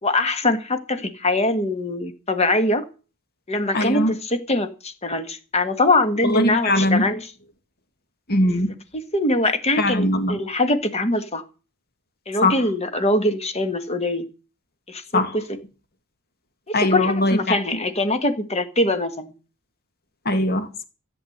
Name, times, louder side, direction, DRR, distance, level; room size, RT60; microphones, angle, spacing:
voice 1, 0.0-2.9 3.5-7.3 8.9-11.4 12.3-14.3 14.9-15.6 16.7-19.3, left 2 dB, 30° left, 1.6 m, -23 dB
voice 2, 3.7-4.1 6.2-7.0 8.3-8.7 9.8-10.4 12.4-12.6 15.1-15.3 16.7-17.4 20.3-20.8, left 1 dB, 45° left, 2.1 m, -20 dB
14.5 x 8.3 x 7.9 m
head